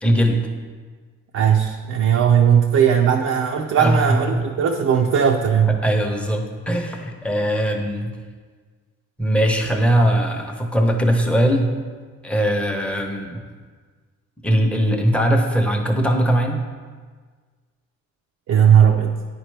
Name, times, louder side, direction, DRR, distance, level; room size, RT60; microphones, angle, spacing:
voice 1, 0.0-0.4 3.8-4.4 5.7-8.1 9.2-11.7 12.2-13.4 14.4-16.6, equal, 5° left, 2 dB, 0.8 m, -20 dB
voice 2, 1.3-5.8 18.5-19.2, right 8 dB, 55° right, 1 dB, 0.6 m, -17 dB
9.8 x 4.4 x 3.3 m, 1.5 s
cardioid pair, 90°, 30 cm